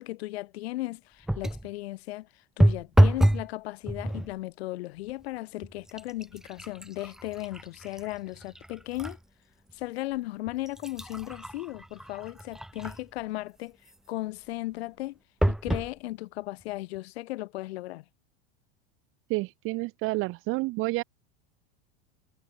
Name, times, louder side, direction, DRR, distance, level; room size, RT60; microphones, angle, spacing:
voice 1, 0.0-2.3 2.6-9.2 9.7-13.8 14.1-15.2 15.5-18.0, left 18 dB, 75° left, 3.9 m, -36 dB
sound 1, 1.2-1.7 2.6-3.5 3.8-4.3 5.1-5.2 5.6-9.2 9.7-9.8 10.5-13.2 15.4-15.9 16.6-16.7 16.9-17.0, right 1 dB, ahead, 1.2 m, -27 dB
voice 2, 19.3-21.0, right 23 dB, 40° right, 1.4 m, -29 dB
supercardioid pair, 155°, 32 cm